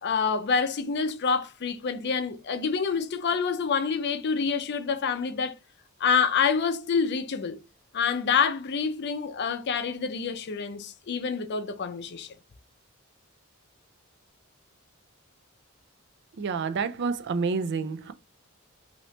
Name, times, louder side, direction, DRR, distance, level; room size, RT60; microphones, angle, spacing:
voice 1, 0.0-5.6 6.0-7.6 7.9-12.3, left 6 dB, 55° left, 0.5 m, -27 dB
voice 2, 16.4-18.1, right 5 dB, 55° right, 0.4 m, -28 dB
2.8 x 2.8 x 3.1 m
head